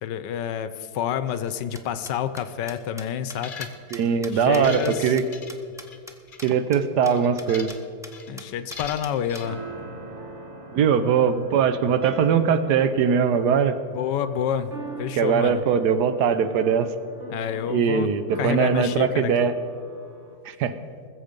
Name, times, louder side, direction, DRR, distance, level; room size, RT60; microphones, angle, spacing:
voice 1, 0.0-3.7 4.3-5.1 8.3-9.6 13.9-14.7 15.0-15.6 17.3-18.1 18.4-19.3, left 9 dB, 80° left, 12 dB, 1.3 m, -28 dB
sound 1, 1.5-6.1 6.4-6.5 6.7-6.8 7.0-7.1 7.4-7.8 8.0-8.1 8.4-9.4, equal, 5° right, 0.3 m, -42 dB
sound 2, 3.3-4.0 4.4-6.0 6.3-6.5 7.0-7.8 8.1-8.3 8.7-9.5, left 5 dB, 35° left, 0.9 m, -40 dB
voice 2, 3.9-5.2 6.4-7.7 10.7-13.8 15.1-16.9 17.7-19.5 20.4-20.7, right 7 dB, 70° right, 11 dB, 1.2 m, -21 dB
sound 3, 9.0-20.3, right 1 dB, 45° right, 1.7 m, -41 dB
20.5 x 7.4 x 5.2 m, 2.2 s
omnidirectional pair, 1.9 m